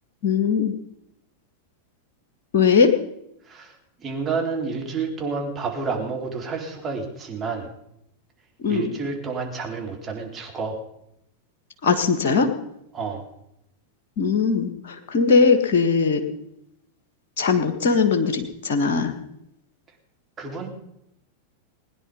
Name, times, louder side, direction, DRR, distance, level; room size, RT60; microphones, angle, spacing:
voice 1, 0.2-0.7 2.5-2.9 8.6-8.9 11.8-12.5 14.2-16.2 17.4-19.1, left 5 dB, 55° left, 7 dB, 1.8 m, -20 dB
voice 2, 3.5-7.7 8.7-10.8 12.9-13.2 20.4-20.7, right 4 dB, 20° right, 0 dB, 4.0 m, -30 dB
21.0 x 10.0 x 5.5 m, 0.79 s
figure-of-eight pair, 90°, 0 cm